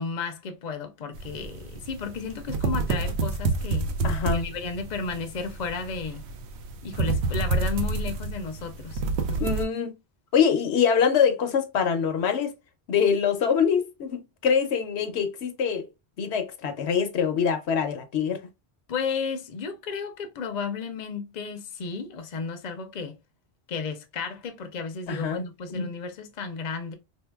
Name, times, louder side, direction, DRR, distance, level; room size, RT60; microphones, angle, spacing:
voice 1, 0.0-3.9 4.3-6.2 6.8-9.0 9.3-9.4 18.9-23.2 23.7-26.9, left 5 dB, 45° left, 0.6 m, -33 dB
sound 1, 1.2-9.6, right 3 dB, 70° right, 0.8 m, -29 dB
voice 2, 4.0-4.4 9.4-10.0 10.3-12.5 12.9-15.9 16.2-18.5 25.1-25.4 25.7-25.9, left 7 dB, 70° left, 0.9 m, -24 dB
3.8 x 2.7 x 2.2 m
omnidirectional pair, 1.2 m